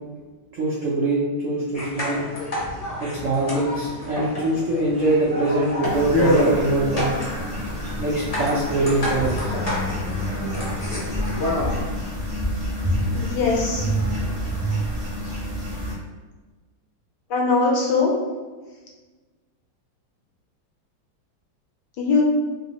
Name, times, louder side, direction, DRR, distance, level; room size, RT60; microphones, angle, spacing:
voice 1, 0.5-2.2 3.0-7.1 8.0-9.5, right 2 dB, 80° right, -6 dB, 0.7 m, -23 dB
sound 1, 1.7-11.8, left 1 dB, 40° left, 0.5 m, -27 dB
sound 2, 5.8-15.9, equal, 20° right, 0.6 m, -28 dB
voice 2, 13.1-13.9 17.3-18.1 22.0-22.2, left 4 dB, 75° left, -1 dB, 1.2 m, -21 dB
3.2 x 2.6 x 2.8 m, 1.3 s
omnidirectional pair, 2.1 m